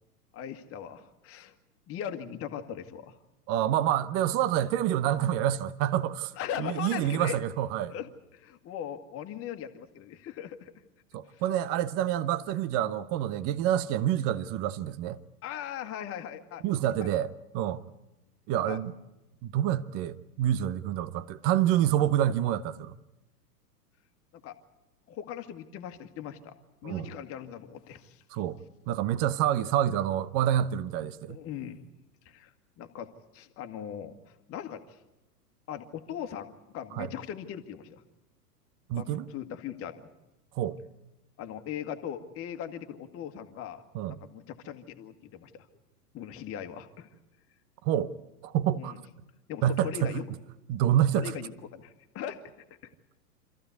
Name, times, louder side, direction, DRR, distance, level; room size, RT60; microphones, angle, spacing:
voice 1, 0.3-1.5 1.9-3.2 6.3-7.4 7.9-10.7 11.3-11.4 15.4-16.6 17.0-17.2 18.7-18.8 24.3-24.5 25.1-26.5 26.8-28.2 31.3-31.8 32.3-34.2 34.5-35.0 35.7-38.0 39.0-40.1 41.4-43.8 44.1-45.7 46.1-47.1 48.8-49.0 49.5-50.3 51.2-52.4 52.8-52.9, left 9 dB, 30° left, 1.8 m, -39 dB
voice 2, 3.5-6.3 6.6-7.9 11.1-15.2 16.6-17.8 18.5-18.9 19.4-22.9 26.8-27.1 28.3-28.6 28.9-31.4 36.9-37.1 38.9-39.3 40.6-40.8 43.9-44.1 47.8-48.1 48.4-48.9 49.6-50.1 50.7-51.3, right 11 dB, 30° right, 0.8 m, -27 dB
26.0 x 14.5 x 9.5 m
figure-of-eight pair, 100°, 48 cm